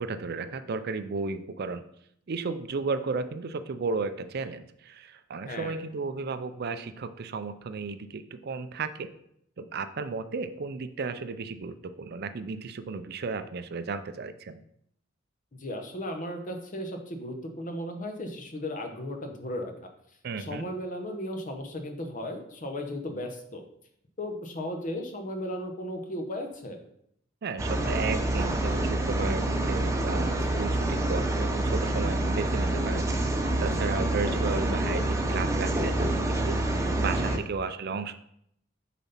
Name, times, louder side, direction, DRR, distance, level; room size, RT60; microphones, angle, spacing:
voice 1, 0.0-1.8 2.3-9.1 9.6-14.6 20.2-20.7 27.4-36.6 37.0-38.1, right 4 dB, 55° right, 11 dB, 0.5 m, -34 dB
voice 2, 15.6-19.9 20.4-23.6 24.2-26.8 33.9-34.4 37.1-37.4, left 1 dB, 40° left, 5 dB, 1.0 m, -36 dB
sound 1, 27.6-37.4, right 1 dB, 15° right, 0.8 m, -27 dB
7.1 x 4.2 x 5.7 m, 0.72 s
head